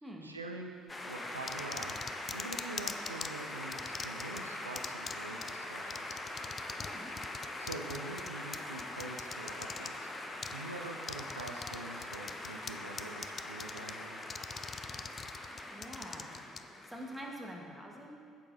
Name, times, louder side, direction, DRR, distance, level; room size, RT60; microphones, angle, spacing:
voice 1, 0.2-0.7 1.1-1.9 2.3-6.2 7.6-10.1 10.5-14.2, right 2 dB, 85° right, 2 dB, 0.4 m, -45 dB
sound 1, 0.9-17.5, left 1 dB, 20° left, 1.1 m, -43 dB
sound 2, 1.5-3.3 3.7-4.4 4.8-5.1 5.4-5.5 5.9-6.9 7.2-9.9 10.4-10.5 11.0-11.8 12.0-12.7 13.0-13.9 14.2-16.6, left 6 dB, 40° left, 0.4 m, -41 dB
voice 2, 6.8-7.1 15.7-16.3 16.8-18.2, equal, 5° right, -1 dB, 1.6 m, -45 dB
8.7 x 7.5 x 4.0 m, 2.1 s
figure-of-eight pair, 50°, 0 cm